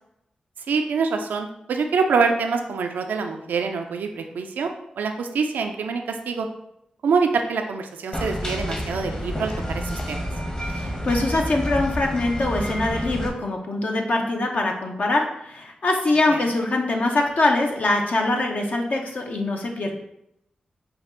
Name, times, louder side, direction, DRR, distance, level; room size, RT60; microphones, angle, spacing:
voice 1, 0.7-4.7 5.0-6.5 7.0-10.2 16.3-16.4, right 5 dB, 85° right, 4 dB, 0.4 m, -25 dB
sound 1, 8.1-13.3, equal, 30° left, 1.1 m, -29 dB
voice 2, 10.6-20.0, left 2 dB, 65° left, 1 dB, 0.8 m, -23 dB
5.2 x 2.4 x 3.8 m, 0.79 s
cardioid pair, 45°, 3 cm